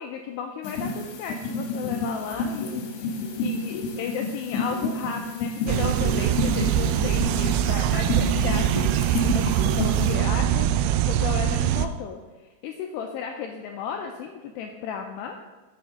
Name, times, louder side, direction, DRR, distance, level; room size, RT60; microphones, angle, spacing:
voice 1, 0.0-12.2 12.6-15.3, left 7 dB, 90° left, 3 dB, 2.4 m, -34 dB
sound 1, 0.6-10.1, left 3 dB, 70° left, 2.6 m, -30 dB
sound 2, 5.7-11.9, right 11 dB, 85° right, 2.9 m, -23 dB
11.0 x 7.9 x 3.7 m, 1.2 s
omnidirectional pair, 5.4 m